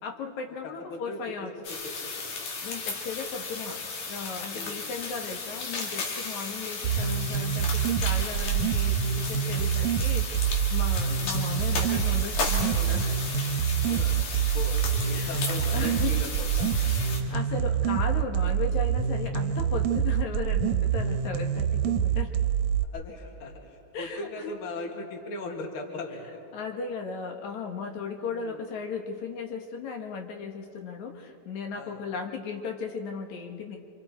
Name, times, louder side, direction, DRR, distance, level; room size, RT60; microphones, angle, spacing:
voice 1, 0.0-1.5 2.6-13.2 15.1-15.4 15.7-16.1 16.8-22.4 23.9-24.5 26.5-33.8, left 5 dB, 70° left, 3 dB, 2.8 m, -36 dB
voice 2, 0.6-1.2 1.6-2.5 4.5-4.8 13.8-16.7 22.9-26.4 28.4-28.6 31.7-32.0, left 2 dB, 45° left, 1 dB, 2.7 m, -39 dB
sound 1, 1.6-17.2, left 4 dB, 90° left, 3.7 m, -35 dB
sound 2, 6.8-22.8, right 8 dB, 80° right, 2.2 m, -26 dB
27.5 x 27.0 x 4.4 m, 2.7 s
omnidirectional pair, 3.5 m